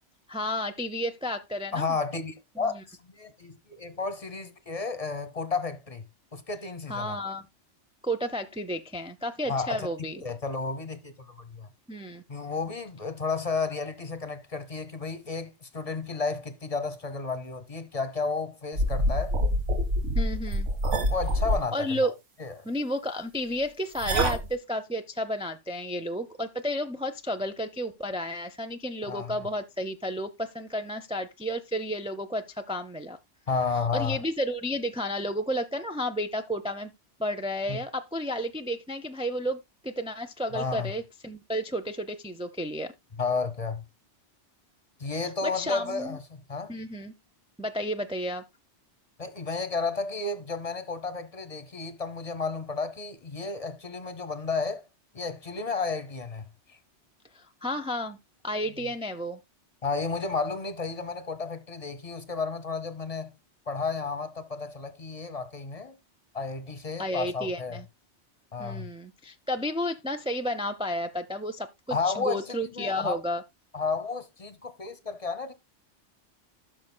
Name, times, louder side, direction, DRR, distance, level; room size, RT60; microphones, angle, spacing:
voice 1, 0.3-2.0 2.6-2.8 6.9-7.4 8.0-10.2 11.9-12.2 20.1-20.7 21.7-22.1 22.6-33.2 33.9-36.9 37.2-42.9 45.4-46.2 46.7-47.1 47.6-48.4 57.3-58.2 58.4-59.4 67.0-67.9 68.6-73.4, equal, 10° right, 0.3 m, -32 dB
voice 2, 1.7-6.0 6.3-7.2 9.5-9.9 10.2-11.7 12.3-19.3 21.1-21.9 22.4-22.7 29.1-29.3 33.5-34.2 37.7-37.8 40.5-40.9 43.2-43.8 45.0-46.2 46.5-46.7 49.2-54.8 55.1-56.4 56.7-56.8 59.8-63.3 63.7-66.0 66.3-67.8 68.5-68.9 71.9-73.2 73.7-75.5, left 4 dB, 35° left, 0.9 m, -32 dB
sound 1, 18.8-21.6 24.0-24.5, equal, 90° right, 1.8 m, -26 dB
15.5 x 6.3 x 2.2 m
omnidirectional pair, 1.2 m